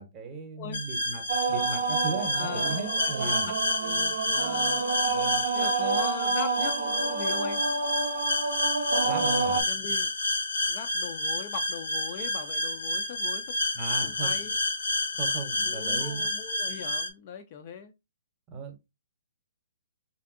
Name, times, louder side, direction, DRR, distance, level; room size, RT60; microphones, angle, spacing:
voice 1, 0.0-3.5 5.1-5.4 9.0-9.6 13.7-14.4 15.1-16.3 18.5-18.8, right 3 dB, 20° right, 0.7 m, -36 dB
sound 1, 0.7-17.1, left 2 dB, 75° left, 0.7 m, -30 dB
sound 2, 1.3-9.6, right 4 dB, 60° right, 0.5 m, -29 dB
voice 2, 2.3-2.8 3.2-3.5 3.8-4.9 5.5-7.6 9.5-10.1 10.7-13.6 14.0-14.6 15.6-17.9, left 7 dB, 35° left, 0.3 m, -40 dB
3.2 x 2.6 x 2.4 m
hypercardioid pair, 160°, 0 cm